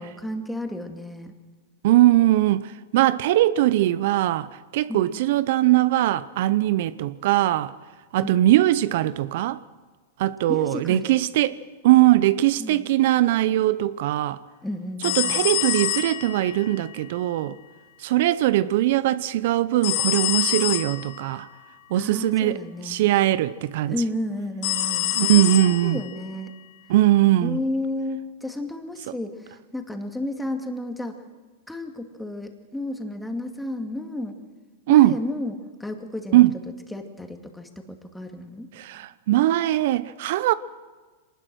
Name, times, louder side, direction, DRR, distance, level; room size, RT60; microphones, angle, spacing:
voice 1, 0.0-1.3 4.9-5.2 8.2-8.5 10.5-11.2 12.6-12.9 14.6-15.5 21.9-23.0 23.9-26.5 27.4-31.2 31.7-34.4 34.9-36.5 36.9-38.7, left 1 dB, 5° left, 2.5 m, -32 dB
voice 2, 1.8-7.7 8.1-9.6 10.2-11.6 11.8-14.4 15.2-17.6 18.0-21.5 21.9-22.6 22.9-23.9 25.2-26.0 26.9-27.6 34.9-35.2 36.3-36.5 38.8-40.5, right 15 dB, 65° right, 0.7 m, -20 dB
sound 1, 15.0-16.6 19.8-21.1 24.6-26.0, left 13 dB, 55° left, 1.9 m, -25 dB
23.5 x 20.0 x 6.3 m
hypercardioid pair, 120°, 0 cm